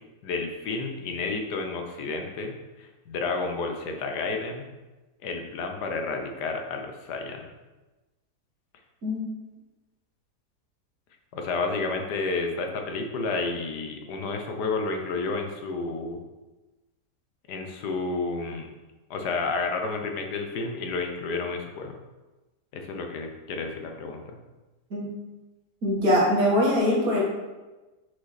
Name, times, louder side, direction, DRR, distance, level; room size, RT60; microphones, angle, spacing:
voice 1, 0.2-4.6 5.2-7.5 11.3-16.2 17.5-18.7 19.1-21.9 22.7-24.4, left 3 dB, 80° left, 4 dB, 1.4 m, -31 dB
voice 2, 25.8-27.2, left 1 dB, 60° right, -5 dB, 2.4 m, -22 dB
6.2 x 5.2 x 4.1 m, 1.1 s
omnidirectional pair, 1.7 m